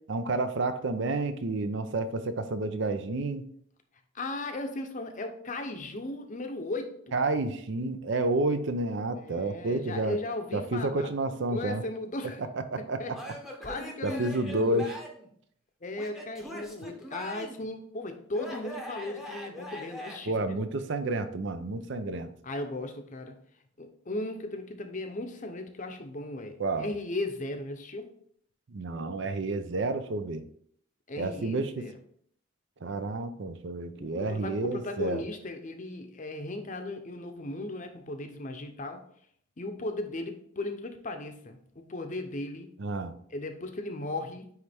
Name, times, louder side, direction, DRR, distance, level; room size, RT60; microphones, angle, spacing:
voice 1, 0.1-3.5 7.1-10.2 10.5-11.8 12.5-13.2 14.0-14.9 20.3-22.3 26.6-26.9 28.7-30.4 31.2-31.7 32.8-35.2 42.8-43.1, right 2 dB, 60° right, 10 dB, 0.5 m, -30 dB
voice 2, 4.1-7.2 9.1-11.1 11.5-12.4 12.8-13.2 13.6-14.9 15.8-20.6 22.4-23.4 23.8-28.1 31.1-31.9 34.0-39.0 39.6-42.7 43.3-44.5, left 2 dB, 40° left, 6 dB, 0.7 m, -37 dB
Male speech man speaking / Yell / Laughter, 13.1-15.3 16.0-17.7 18.3-20.2, equal, ahead, 0.8 m, -41 dB
9.3 x 3.3 x 3.5 m, 0.64 s
head